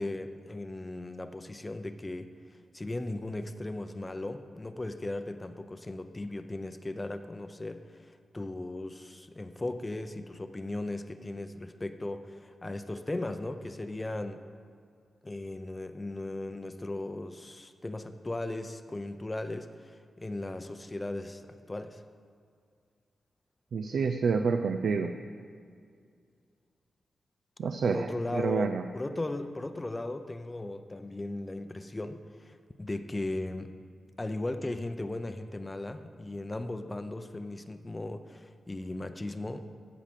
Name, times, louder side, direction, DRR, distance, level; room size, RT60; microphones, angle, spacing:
voice 1, 0.0-2.3 2.7-14.5 15.2-22.0 27.9-33.7 34.2-39.6, left 2 dB, 20° left, 9 dB, 0.6 m, -37 dB
voice 2, 23.7-25.1 27.6-28.9, right 5 dB, 80° right, 7 dB, 0.5 m, -28 dB
14.5 x 5.0 x 7.5 m, 2.2 s
cardioid pair, 85°, 0 cm